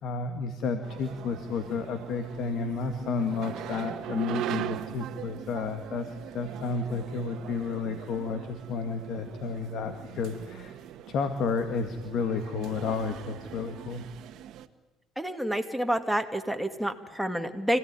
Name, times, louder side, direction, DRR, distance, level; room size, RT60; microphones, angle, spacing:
voice 1, 0.0-10.8 11.1-14.1, left 4 dB, 65° left, 7 dB, 1.9 m, -31 dB
sound 1, 0.8-14.7, right 11 dB, 70° right, 1.4 m, -40 dB
voice 2, 15.2-17.8, equal, ahead, 5 dB, 2.2 m, -29 dB
25.5 x 16.5 x 9.8 m, 1.1 s
supercardioid pair, 85°, 0 cm